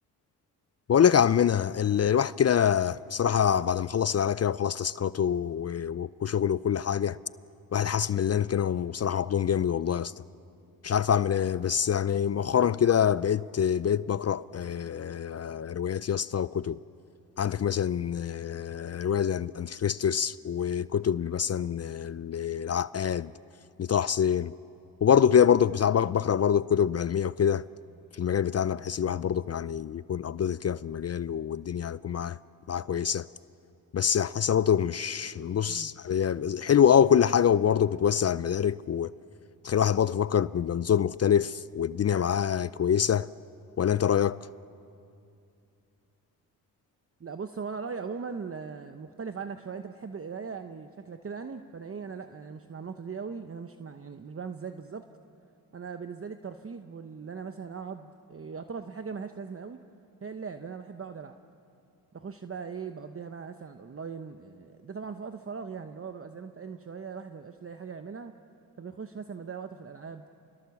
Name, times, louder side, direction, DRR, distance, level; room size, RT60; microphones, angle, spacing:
voice 1, 0.9-7.2 7.7-10.1 10.8-16.8 17.4-23.3 23.8-24.5 25.0-27.7 28.1-32.4 32.7-33.3 33.9-39.1 39.6-43.3 43.8-44.4, left 8 dB, 40° left, 0.5 m, -25 dB
voice 2, 47.2-55.0 55.7-59.8 60.2-61.4 62.1-68.3 68.8-70.2, right 5 dB, 35° right, 0.9 m, -39 dB
26.0 x 21.0 x 7.2 m
cardioid pair, 55°, 39 cm